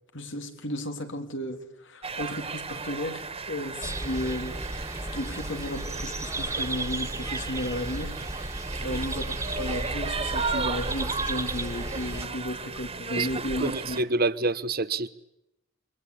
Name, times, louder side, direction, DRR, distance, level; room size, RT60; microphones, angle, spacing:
voice 1, 0.1-14.0, left 1 dB, 65° left, 3.4 m, -34 dB
sound 1, 2.0-14.0, right 4 dB, 30° right, 2.4 m, -35 dB
sound 2, 3.8-12.3, right 2 dB, 15° right, 2.3 m, -34 dB
voice 2, 13.6-15.1, right 3 dB, 50° right, 1.3 m, -27 dB
28.5 x 24.0 x 8.5 m
head